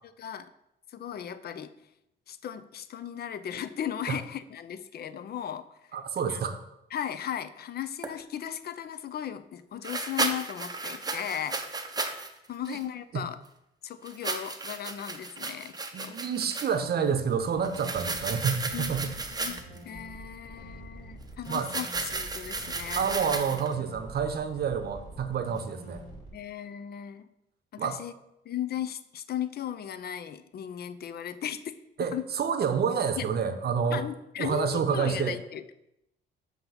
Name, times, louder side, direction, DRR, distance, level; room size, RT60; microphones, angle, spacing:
voice 1, 0.2-0.5 0.9-1.7 2.3-6.0 6.3-6.4 6.9-11.6 12.5-13.4 13.8-16.2 18.7-19.6 19.8-23.1 26.3-27.3 27.7-28.1 28.5-31.7 32.1-32.2 33.2-33.3 33.9-35.6, left 10 dB, 55° left, 12 dB, 0.5 m, -36 dB
voice 2, 5.9-6.6 12.7-12.8 13.1-13.2 15.9-19.1 21.5-21.7 22.9-26.0 27.8-28.0 32.0-34.0 34.4-35.4, right 6 dB, 55° right, 9 dB, 0.7 m, -28 dB
sound 1, 8.0-8.1 9.8-12.3 12.6-12.8 14.0-16.8 17.6-19.8 21.4-23.7, right 3 dB, 20° right, 0.7 m, -34 dB
sound 2, 17.4-26.3, right 1 dB, 25° left, 2.4 m, -46 dB
7.7 x 2.8 x 5.8 m, 0.84 s
cardioid pair, 90°, 20 cm